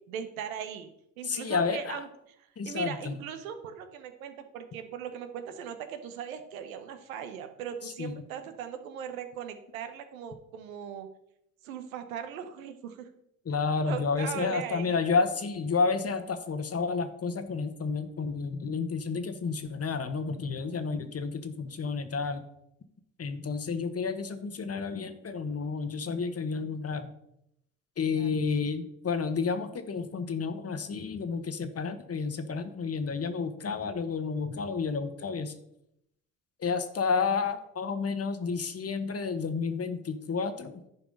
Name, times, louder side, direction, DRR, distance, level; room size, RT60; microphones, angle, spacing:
voice 1, 0.1-0.9 1.2-2.1 2.6-11.1 11.6-13.1 13.9-15.0 28.1-28.3, right 8 dB, 85° right, 8 dB, 0.9 m, -39 dB
voice 2, 1.2-2.0 2.6-3.2 7.8-8.1 13.4-22.4 23.2-27.1 28.0-35.6 36.6-40.8, left 5 dB, 35° left, 10 dB, 1.3 m, -31 dB
11.0 x 4.7 x 5.4 m, 0.78 s
hypercardioid pair, 50°, 40 cm